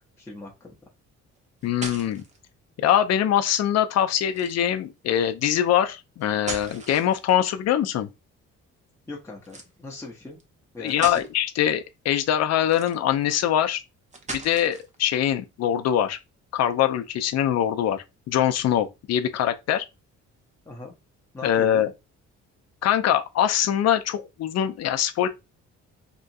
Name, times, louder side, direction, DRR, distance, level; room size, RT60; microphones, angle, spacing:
voice 1, 0.2-0.7 9.1-10.4 10.7-11.2 20.7-20.9 21.3-21.9, left 2 dB, 10° left, 0.7 m, -39 dB
sound 1, 1.4-2.4 4.3-4.8 6.2-7.5 9.4-9.7 10.4-10.5 10.9-11.3 12.6-13.2 14.1-14.9, right 3 dB, 25° right, 0.7 m, -37 dB
voice 2, 1.6-2.2 2.8-8.1 10.8-13.8 14.3-16.2 16.5-19.8 21.4-21.9 22.8-25.3, left 10 dB, 60° left, 0.5 m, -23 dB
2.9 x 2.4 x 2.6 m
cardioid pair, 90°, 30 cm